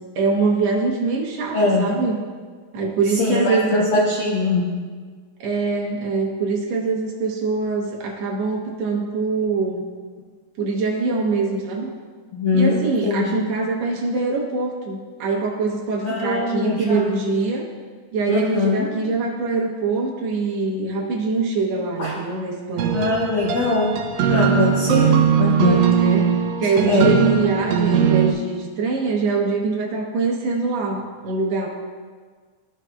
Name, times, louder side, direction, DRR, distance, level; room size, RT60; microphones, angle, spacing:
voice 1, 0.1-2.2 2.7-4.4 5.4-9.8 10.6-11.9 12.5-17.6 18.1-23.0 26.0-31.7, right 4 dB, 65° right, -1 dB, 1.8 m, -23 dB
voice 2, 1.5-1.9 3.2-4.7 12.3-13.5 16.0-17.1 18.3-18.9 22.0-22.1 22.9-23.9 24.3-25.9 26.9-27.2, left 3 dB, 80° left, -5 dB, 1.1 m, -21 dB
sound 1, 22.8-28.3, right 7 dB, 90° right, 1.5 m, -19 dB
14.0 x 4.8 x 2.2 m, 1.6 s
omnidirectional pair, 3.7 m